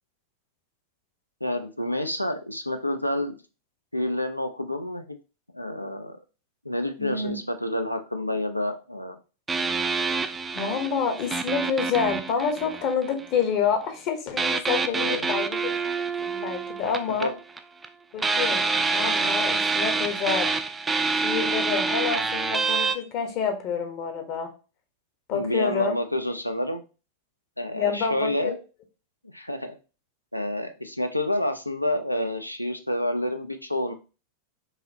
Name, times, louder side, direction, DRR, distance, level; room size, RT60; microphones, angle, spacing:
voice 1, 1.4-3.3 3.9-5.1 5.5-6.2 6.6-9.2 14.8-15.3 17.2-17.3 25.3-26.8 27.6-28.6 29.3-29.8 30.3-33.9, left 1 dB, 90° left, 7 dB, 0.4 m, -28 dB
voice 2, 7.0-7.4 10.5-15.7 16.2-17.3 18.1-20.5 21.2-24.5 25.3-26.0 27.7-28.5, left 6 dB, 40° left, 5 dB, 0.9 m, -28 dB
sound 1, 9.5-13.3 14.4-17.9 18.2-23.0, right 4 dB, 15° right, 0.3 m, -27 dB
4.8 x 2.6 x 2.7 m, 0.33 s
figure-of-eight pair, 90°, 0 cm